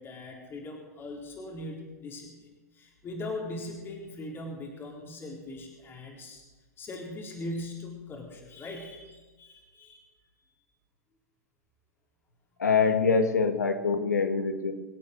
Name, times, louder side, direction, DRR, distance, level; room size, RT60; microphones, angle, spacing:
voice 1, 0.0-6.4 6.8-10.2, left 2 dB, 25° left, 0 dB, 4.0 m, -40 dB
voice 2, 12.6-14.7, left 5 dB, 80° left, 9 dB, 1.8 m, -24 dB
24.5 x 8.5 x 6.7 m, 1.3 s
hypercardioid pair, 105°, 9 cm